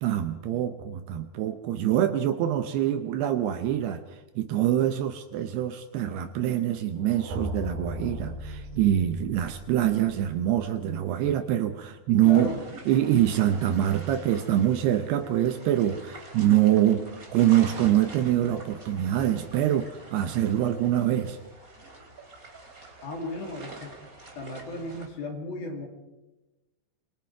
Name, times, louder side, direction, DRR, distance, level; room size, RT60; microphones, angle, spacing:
voice 1, 0.0-4.0 4.4-12.5 12.9-17.1 17.3-21.4, right 11 dB, 75° right, 9 dB, 2.6 m, -25 dB
sound 1, 7.0-10.9, equal, 55° right, 5.0 m, -38 dB
voice 2, 12.1-12.6 23.0-23.9 24.4-25.9, left 2 dB, 55° left, 2 dB, 4.4 m, -35 dB
sound 2, 12.2-25.1, right 2 dB, 20° right, 2.7 m, -46 dB
27.0 x 23.0 x 4.7 m, 1.1 s
omnidirectional pair, 5.3 m